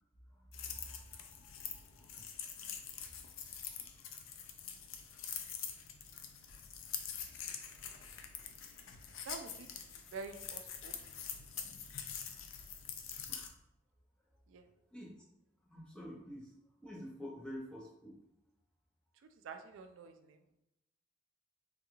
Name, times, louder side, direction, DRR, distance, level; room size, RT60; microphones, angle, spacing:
voice 1, 0.3-2.1 3.0-3.2 3.6-4.1 13.3-13.5 14.9-15.2 15.7-16.5 16.8-18.2, equal, 5° left, -3 dB, 0.6 m, -50 dB
sound 1, 0.5-13.5, left 7 dB, 85° left, 0.4 m, -45 dB
voice 2, 9.2-10.9 14.5-14.7 19.4-20.5, right 4 dB, 85° right, 7 dB, 0.3 m, -48 dB
3.6 x 2.3 x 3.0 m, 0.85 s
head